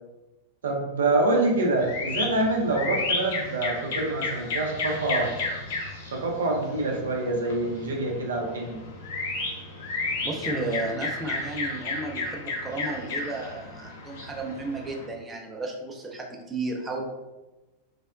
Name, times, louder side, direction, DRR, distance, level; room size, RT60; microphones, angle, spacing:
voice 1, 0.6-5.3 6.1-8.8, right 2 dB, 65° right, 1 dB, 0.5 m, -26 dB
sound 1, 1.8-15.1, left 3 dB, 55° left, 0.6 m, -33 dB
voice 2, 10.2-17.1, right 2 dB, 15° right, 0 dB, 0.5 m, -33 dB
3.3 x 2.1 x 2.4 m, 1.1 s
figure-of-eight pair, 90°, 0 cm